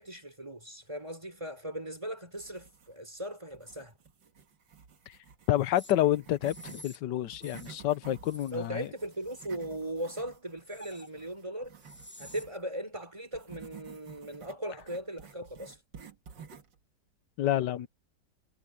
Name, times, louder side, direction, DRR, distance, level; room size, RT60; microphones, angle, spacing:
voice 1, 0.0-3.9 8.5-11.8 12.2-15.8, right 1 dB, 15° right, 4.7 m, -38 dB
sound 1, 2.4-3.2 3.5-6.9 7.2-12.6 13.3-16.8, right 7 dB, 90° right, 2.5 m, -52 dB
voice 2, 5.5-8.9 17.4-17.9, left 13 dB, 75° left, 1.4 m, -28 dB
sound 2, 5.8-5.9 6.4-7.0 7.4-7.8 8.2-8.5 9.0-9.6 10.6-11.1 11.8-12.4, left 1 dB, 10° left, 0.9 m, -50 dB
omnidirectional pair, 1.9 m